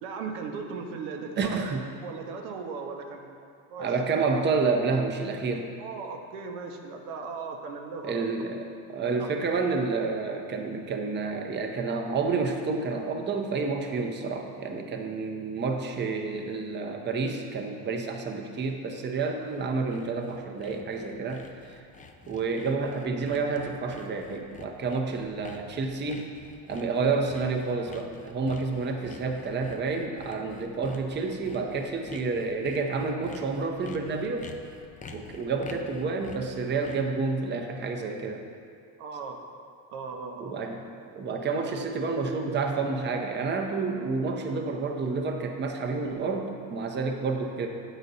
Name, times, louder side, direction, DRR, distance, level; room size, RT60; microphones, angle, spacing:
voice 1, 0.0-1.6 2.0-3.9 5.8-8.3 9.2-9.3 39.0-39.4 39.9-40.6, right 5 dB, 90° right, 3 dB, 0.8 m, -37 dB
voice 2, 1.4-1.9 3.8-5.7 8.0-21.8 22.3-26.3 26.7-34.5 35.1-38.5 40.4-47.7, right 4 dB, 25° right, 3 dB, 0.6 m, -29 dB
Sawing, 19.5-37.2, left 4 dB, 20° left, 0.3 m, -48 dB
8.2 x 4.0 x 4.1 m, 2.3 s
supercardioid pair, 95°, 43 cm